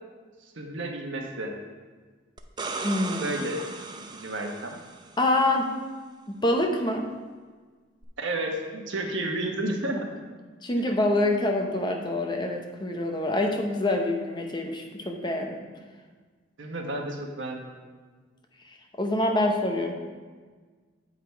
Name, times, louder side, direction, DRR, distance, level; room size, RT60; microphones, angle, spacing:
voice 1, 0.5-1.5 3.2-4.8 8.2-10.1 10.7-10.9 16.6-17.8, right 1 dB, 75° right, 2 dB, 1.1 m, -32 dB
sound 1, 2.4-5.2 8.0-8.1, right 3 dB, 25° right, 0.5 m, -37 dB
voice 2, 2.8-3.3 5.2-5.7 6.3-7.0 10.6-15.6 19.0-19.9, left 1 dB, 25° left, 2 dB, 0.7 m, -26 dB
8.1 x 5.1 x 4.5 m, 1.4 s
head